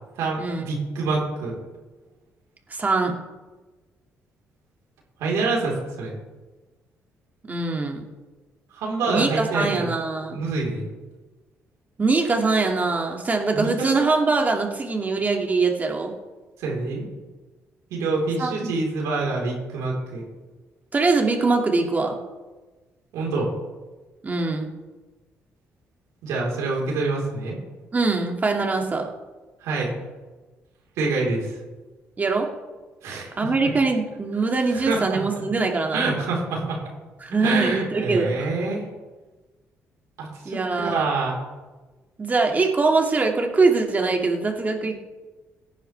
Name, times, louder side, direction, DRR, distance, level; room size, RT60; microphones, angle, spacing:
voice 1, 0.2-1.6 5.2-6.2 8.7-9.9 10.3-10.9 13.5-14.1 16.6-17.1 17.9-20.2 23.1-23.5 26.2-27.6 29.6-29.9 31.0-31.5 33.0-33.3 34.7-35.4 35.9-36.8 37.4-38.8 40.2-41.4, right 3 dB, 90° right, -2 dB, 3.9 m, -26 dB
voice 2, 2.7-3.2 7.4-8.0 9.1-10.4 12.0-16.1 18.4-18.7 20.9-22.2 24.2-24.7 27.9-29.1 32.2-32.5 33.4-36.0 37.2-38.4 40.4-41.1 42.2-45.0, right 3 dB, 30° right, 2 dB, 2.2 m, -23 dB
17.5 x 10.0 x 3.4 m, 1.2 s
cardioid pair, 80°, 5 cm